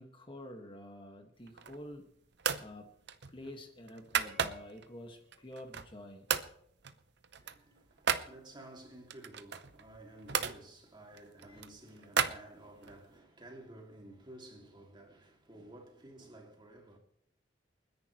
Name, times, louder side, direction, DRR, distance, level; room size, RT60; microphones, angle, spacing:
voice 1, 0.0-2.1 2.6-2.9 3.3-6.3 7.4-7.7 11.5-11.6, left 1 dB, 25° left, 1.8 m, -49 dB
sound 1, 1.4-1.9 2.4-2.7 3.1-4.9 5.3-6.0 6.3-6.5 6.8-8.3 9.1-10.6 11.1-13.0, right 7 dB, 65° right, 0.8 m, -35 dB
sound 2, 4.2-6.6, left 3 dB, 80° right, 3.7 m, -62 dB
voice 2, 7.4-17.0, right 1 dB, 25° right, 2.6 m, -53 dB
29.0 x 10.5 x 3.2 m
head